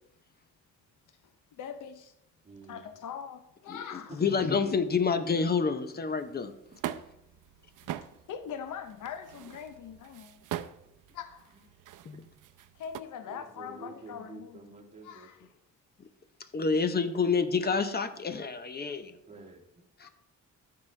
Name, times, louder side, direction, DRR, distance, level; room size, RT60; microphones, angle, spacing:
voice 1, 1.5-2.1 2.7-4.2 7.8-10.4 11.1-11.6 12.7-14.6 15.0-15.5 20.0-20.1, left 8 dB, 80° left, 0.7 m, -42 dB
voice 2, 2.4-2.9 4.2-4.5 11.6-11.7 13.3-15.5 18.1-18.4 19.3-19.8, right 2 dB, 20° right, 1.6 m, -48 dB
voice 3, 4.1-6.5 12.1-12.2 16.5-19.1 20.0-20.1, left 5 dB, 30° left, 0.7 m, -28 dB
sound 1, 6.1-13.0, right 12 dB, 85° right, 0.5 m, -43 dB
13.5 x 5.7 x 3.3 m
cardioid pair, 130°, 31 cm